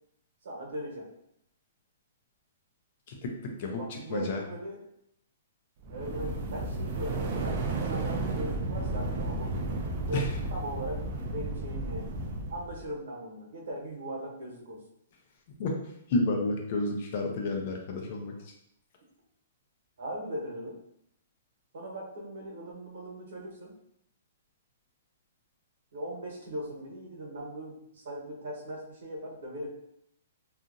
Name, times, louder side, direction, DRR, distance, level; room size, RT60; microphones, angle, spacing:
voice 1, 0.4-1.1 3.7-4.8 5.9-9.6 10.1-10.2 10.5-11.0 11.3-12.1 12.5-14.8 20.0-20.7 21.7-23.7 25.9-29.7, equal, 70° right, -2 dB, 1.0 m, -39 dB
voice 2, 3.1-4.4 10.1-10.3 15.6-15.8 16.1-18.3, left 2 dB, 35° left, 2 dB, 0.5 m, -31 dB
sound 1, 5.8-12.8, right 2 dB, 30° right, 0.3 m, -33 dB
2.8 x 2.4 x 2.5 m, 0.76 s
hypercardioid pair, 175°, 0 cm